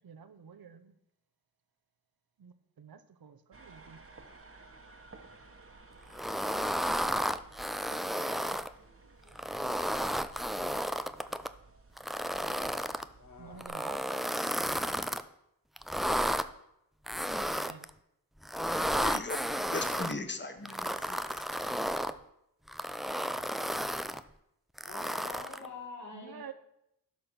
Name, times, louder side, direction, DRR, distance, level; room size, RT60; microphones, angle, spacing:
voice 1, 0.0-0.9 2.4-4.0 13.4-14.0 17.6-17.9 26.1-26.5, right 7 dB, 65° right, 11 dB, 0.9 m, -49 dB
sound 1, 3.5-13.7, right 3 dB, 35° right, 1.3 m, -55 dB
sound 2, 6.1-8.7 9.3-11.5 12.0-13.1 13.6-15.2 15.8-16.5 17.1-17.9 18.4-20.1 20.7-22.2 22.7-24.2 24.8-25.7, equal, ahead, 0.4 m, -33 dB
voice 2, 8.4-11.0, equal, 75° left, -4 dB, 2.4 m, -67 dB
voice 3, 12.3-12.9 13.2-13.8 24.9-26.4, left 3 dB, 45° left, -3 dB, 3.7 m, -47 dB
voice 4, 19.0-19.4 19.7-21.8, left 3 dB, 30° left, 8 dB, 1.2 m, -38 dB
12.0 x 4.2 x 6.0 m, 0.82 s
cardioid pair, 50°, 39 cm